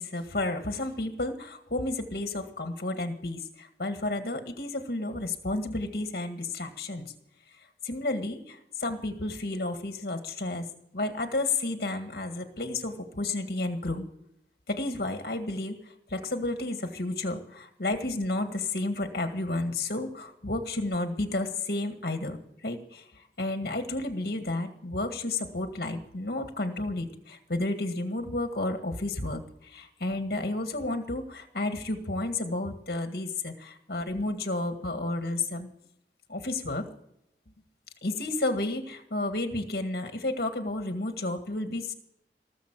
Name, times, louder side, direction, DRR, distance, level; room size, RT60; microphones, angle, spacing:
voice 1, 0.0-7.1 7.8-10.7 10.9-14.1 14.7-22.4 22.6-35.7 36.3-36.8 38.0-41.9, left 2 dB, 60° left, 6 dB, 1.8 m, -31 dB
18.5 x 7.4 x 7.5 m, 0.75 s
head